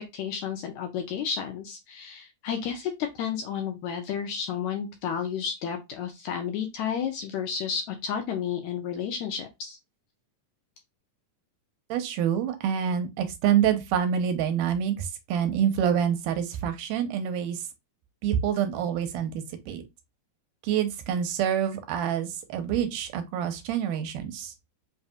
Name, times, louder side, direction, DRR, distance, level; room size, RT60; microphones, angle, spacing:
voice 1, 0.1-9.8, left 7 dB, 75° left, 1.8 m, -32 dB
voice 2, 11.9-17.6 18.2-19.8 20.6-24.5, right 9 dB, 85° right, 2.2 m, -27 dB
5.3 x 2.6 x 2.3 m
omnidirectional pair, 3.7 m